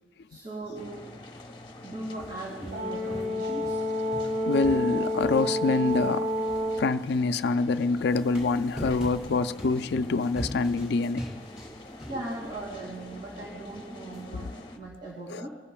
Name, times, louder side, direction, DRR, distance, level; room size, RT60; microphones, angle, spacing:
voice 1, 0.3-1.1 1.8-3.8 12.0-15.5, right 2 dB, 50° right, 2.5 m, -38 dB
sound 1, 0.7-14.8, left 1 dB, 25° left, 1.0 m, -46 dB
sound 2, 2.2-3.8 4.1-7.2 7.9-12.6 13.0-13.1 14.1-14.2, equal, 5° right, 3.2 m, -41 dB
Brass instrument, 2.7-6.9, left 1 dB, 70° right, 1.3 m, -29 dB
voice 2, 4.5-6.3 6.8-11.2 14.3-14.4 15.3-15.4, left 3 dB, 60° left, 0.4 m, -26 dB
22.0 x 14.0 x 2.3 m
head